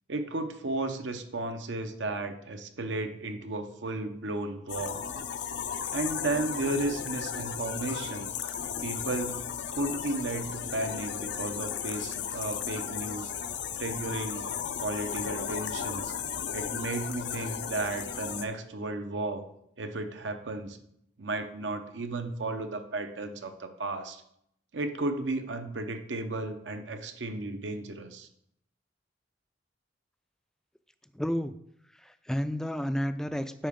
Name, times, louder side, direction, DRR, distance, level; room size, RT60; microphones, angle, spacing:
voice 1, 0.1-5.0 5.9-8.3 8.8-9.4 9.7-13.3 13.8-14.5 14.8-16.1 16.5-19.5 19.8-20.8 21.2-24.2 24.7-28.3, right 2 dB, 80° right, 7 dB, 0.8 m, -34 dB
sound 1, 4.7-18.4, left 7 dB, 70° left, 0.5 m, -35 dB
voice 2, 31.2-31.5 32.1-33.7, equal, 5° left, 10 dB, 0.3 m, -31 dB
8.8 x 4.7 x 3.6 m, 0.73 s
head